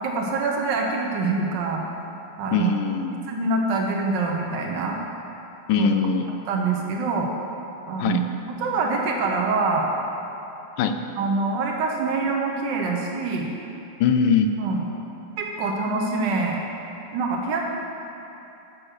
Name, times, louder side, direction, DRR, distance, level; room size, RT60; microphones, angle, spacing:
voice 1, 0.0-1.8 2.4-2.7 3.3-5.0 5.7-5.9 6.5-7.3 7.9-8.2 8.6-9.9 11.2-13.5 14.6-14.9 15.4-16.6 17.1-17.6, right 3 dB, 85° right, 0 dB, 1.5 m, -25 dB
voice 2, 2.5-3.2 5.7-6.3 8.0-8.2 10.8-11.0 14.0-14.5, left 5 dB, 80° left, 7 dB, 1.2 m, -21 dB
7.8 x 6.1 x 6.4 m, 2.9 s
omnidirectional pair, 1.9 m